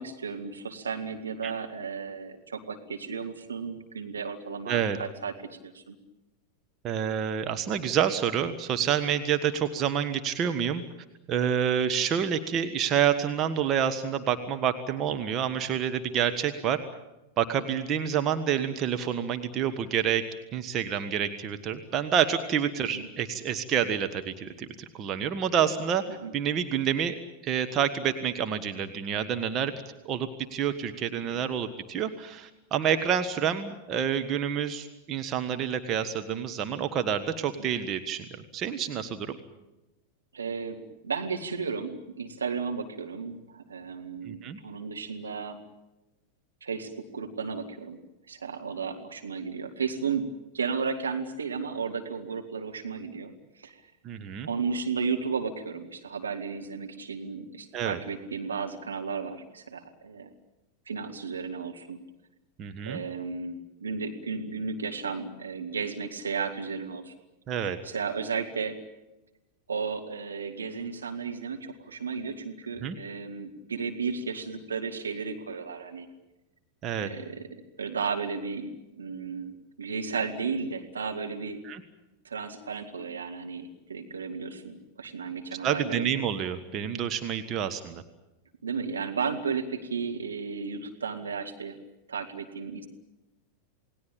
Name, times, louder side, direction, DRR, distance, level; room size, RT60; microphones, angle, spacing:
voice 1, 0.0-6.0 22.9-23.1 26.2-26.3 31.2-31.5 37.6-37.7 40.3-45.6 46.6-48.0 48.3-53.8 54.5-60.3 60.9-62.0 62.9-67.1 67.6-68.8 69.7-76.1 77.0-77.5 77.8-79.5 79.8-81.6 82.2-86.1 88.6-91.8 92.1-92.9, right 5 dB, 75° right, 4 dB, 2.1 m, -34 dB
voice 2, 4.7-5.0 6.8-10.8 11.3-16.8 17.4-20.2 20.5-24.7 25.0-26.0 26.3-27.1 27.4-29.7 30.0-38.2 38.5-39.3 44.2-44.6 54.0-54.5 57.7-58.0 62.6-63.0 67.5-67.8 72.8-73.0 76.8-77.1 81.6-81.8 85.6-88.0, right 8 dB, 30° right, 7 dB, 1.6 m, -28 dB
28.5 x 19.0 x 8.8 m, 1.0 s
figure-of-eight pair, 90°, 0 cm